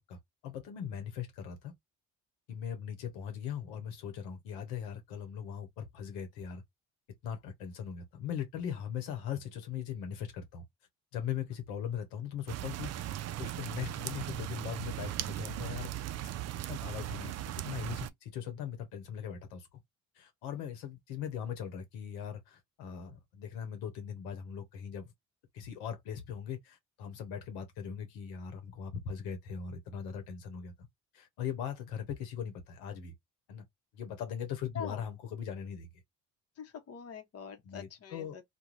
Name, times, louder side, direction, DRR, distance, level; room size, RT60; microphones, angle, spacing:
voice 1, 0.1-1.7 2.5-6.6 7.2-10.6 11.1-15.9 16.7-17.3 17.6-19.8 20.2-25.1 25.5-30.7 31.1-33.1 33.5-33.6 33.9-35.9 37.6-38.4, left 8 dB, 85° left, 0.9 m, -40 dB
sound 1, 12.5-18.1, right 12 dB, 45° right, 0.4 m, -38 dB
voice 2, 36.6-38.4, left 7 dB, 45° left, 0.9 m, -44 dB
2.5 x 2.2 x 3.1 m
supercardioid pair, 65°, 36 cm